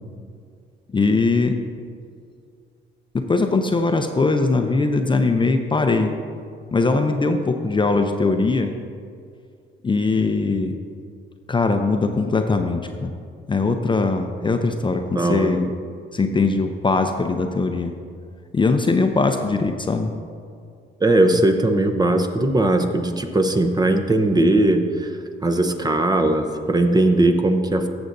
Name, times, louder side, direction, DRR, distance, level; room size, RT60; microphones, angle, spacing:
voice 1, 0.9-1.6 3.1-6.1 6.7-8.7 9.8-10.7 11.5-13.1 13.5-15.7 16.1-17.9 18.5-20.1, left 3 dB, 25° left, 5 dB, 0.5 m, -21 dB
voice 2, 15.1-15.6 21.0-25.1 25.4-27.8, right 2 dB, 20° right, 6 dB, 0.7 m, -19 dB
14.0 x 7.0 x 2.6 m, 2.3 s
cardioid pair, 90°, 20 cm